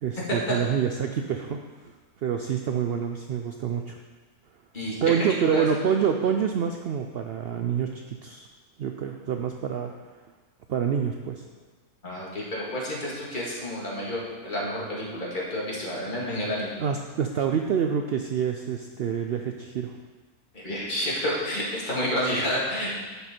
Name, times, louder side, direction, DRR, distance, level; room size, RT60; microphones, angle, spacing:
voice 1, 0.0-1.6 2.2-4.0 5.0-8.5 8.8-9.9 10.7-11.4 16.8-19.9, right 7 dB, 85° right, 4 dB, 0.5 m, -27 dB
voice 2, 4.7-5.6 12.0-16.8 20.5-23.0, left 1 dB, 35° left, -5 dB, 2.1 m, -30 dB
10.5 x 5.4 x 4.3 m, 1.4 s
omnidirectional pair, 1.6 m